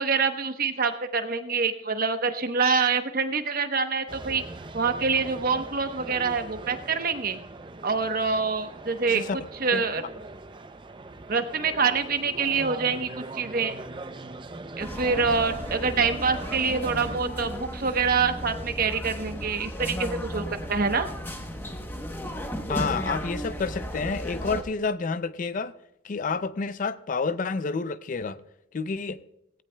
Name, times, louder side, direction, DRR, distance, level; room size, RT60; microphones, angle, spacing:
voice 1, 0.0-4.4 4.7-7.4 7.8-9.2 9.6-10.0 11.3-13.8 14.8-21.1, right 5 dB, 45° right, 0.9 m, -26 dB
sound 1, 4.1-17.2, right 2 dB, 25° right, 0.5 m, -41 dB
voice 2, 9.1-9.4 9.7-9.8 22.7-25.7 26.0-28.4 28.7-29.2, left 4 dB, 40° left, 0.4 m, -29 dB
sound 2, 14.8-24.6, equal, 10° left, 0.9 m, -35 dB
17.5 x 16.5 x 2.2 m
head